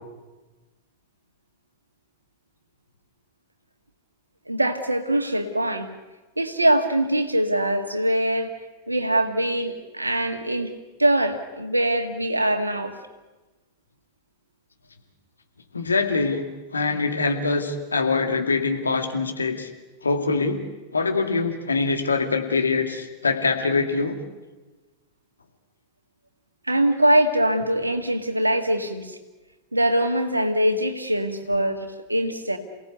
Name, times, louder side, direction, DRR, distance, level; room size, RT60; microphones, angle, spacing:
voice 1, 4.5-5.9 6.4-8.5 8.9-10.7 11.0-13.0 26.7-29.2 29.7-32.6, right 1 dB, 85° right, 7 dB, 1.9 m, -23 dB
voice 2, 15.7-16.4 16.7-19.7 20.0-20.6 20.9-24.2, left 4 dB, 75° left, 5 dB, 2.3 m, -23 dB
28.0 x 17.5 x 8.2 m, 1.2 s
figure-of-eight pair, 90°, 0 cm